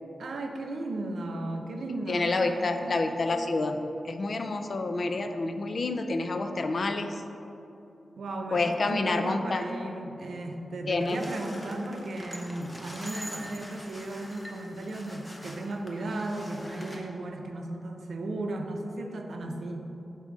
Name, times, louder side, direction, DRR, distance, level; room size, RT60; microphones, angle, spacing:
voice 1, 0.2-3.0 8.2-19.9, right 2 dB, 85° right, 3 dB, 0.6 m, -35 dB
voice 2, 2.1-3.8 4.0-7.2 8.5-9.6 10.9-11.2, left 3 dB, 45° left, 7 dB, 0.4 m, -28 dB
sound 1, 11.0-17.0, equal, 10° left, 0.7 m, -44 dB
7.9 x 2.8 x 6.1 m, 2.9 s
wide cardioid pair, 165°, 0 cm